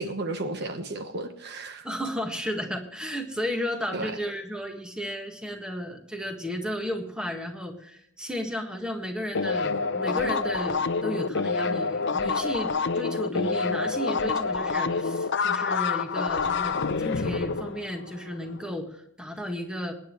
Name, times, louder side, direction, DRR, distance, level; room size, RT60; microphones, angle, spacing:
voice 1, 0.0-1.9 3.9-4.1, right 2 dB, 55° right, 7 dB, 1.2 m, -33 dB
voice 2, 1.8-19.9, equal, 5° right, 3 dB, 1.7 m, -33 dB
sound 1, 9.3-18.5, left 4 dB, 55° left, 0.7 m, -27 dB
23.5 x 10.0 x 3.1 m, 0.74 s
head